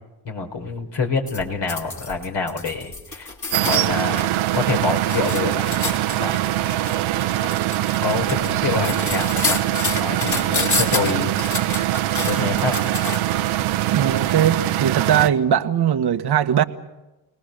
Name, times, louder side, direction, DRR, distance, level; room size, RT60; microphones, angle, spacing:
voice 1, 0.2-3.3 3.6-4.3 4.5-5.6 6.2-6.7 8.0-11.3 12.2-12.7, left 4 dB, 55° left, 4.5 m, -26 dB
sound 1, 1.3-4.3 4.7-13.4 14.2-14.3, left 3 dB, 35° left, 3.6 m, -29 dB
sound 2, 3.5-15.3, right 14 dB, 70° right, 1.3 m, -23 dB
voice 2, 13.9-16.6, right 9 dB, 55° right, 1.4 m, -20 dB
30.0 x 20.0 x 6.7 m
hypercardioid pair, 40°, 48 cm